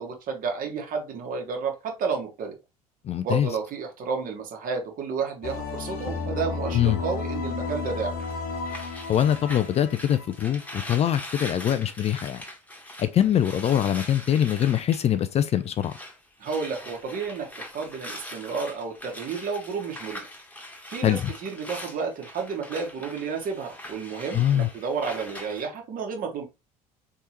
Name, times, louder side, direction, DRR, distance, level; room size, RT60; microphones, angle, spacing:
voice 1, 0.0-2.6 3.2-8.2 16.4-20.3 20.9-26.4, right 5 dB, 45° right, 1.6 m, -31 dB
voice 2, 3.0-3.5 6.7-7.0 9.1-12.4 13.0-15.9 21.0-21.3 24.3-24.7, left 10 dB, 35° left, 0.4 m, -23 dB
sound 1, 5.4-10.8, left 4 dB, 60° left, 1.1 m, -33 dB
sound 2, 8.2-16.2 16.4-25.6, left 1 dB, 10° left, 1.3 m, -42 dB
4.2 x 3.5 x 3.0 m
figure-of-eight pair, 60°, 19 cm